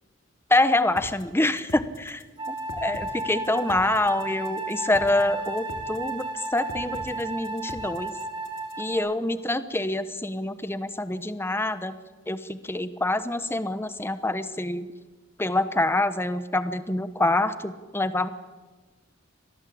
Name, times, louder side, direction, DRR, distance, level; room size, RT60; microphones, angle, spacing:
voice 1, 0.5-8.1 8.8-12.0 12.3-14.9 15.4-18.3, left 2 dB, 10° left, 12 dB, 1.0 m, -26 dB
sound 1, 1.0-8.9, left 1 dB, 80° left, 2.8 m, -43 dB
Wind instrument woodwind instrument, 2.4-9.2, right 2 dB, 25° right, 3.8 m, -33 dB
25.5 x 18.0 x 8.6 m, 1.3 s
head